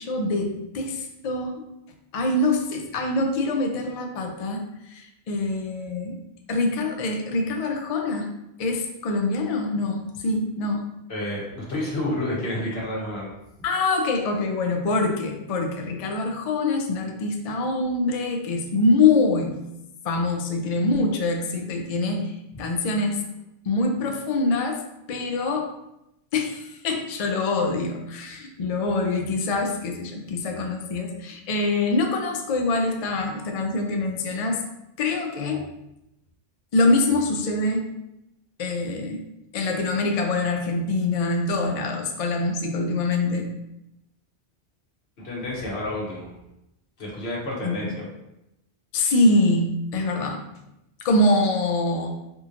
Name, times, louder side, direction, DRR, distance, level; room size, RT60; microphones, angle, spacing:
voice 1, 0.0-1.6 2.1-6.2 6.5-8.3 8.6-10.9 13.6-19.6 20.0-22.3 22.6-23.3 23.7-24.8 25.1-25.7 26.3-34.6 35.0-35.6 36.7-37.8 38.6-39.2 39.5-43.5 47.6-47.9 48.9-50.4 51.0-52.1, left 2 dB, 55° left, 3 dB, 0.4 m, -24 dB
voice 2, 11.1-13.3 45.2-46.3 47.0-47.9, left 1 dB, 75° left, -3 dB, 1.2 m, -29 dB
3.7 x 2.9 x 2.5 m, 0.86 s
omnidirectional pair, 1.1 m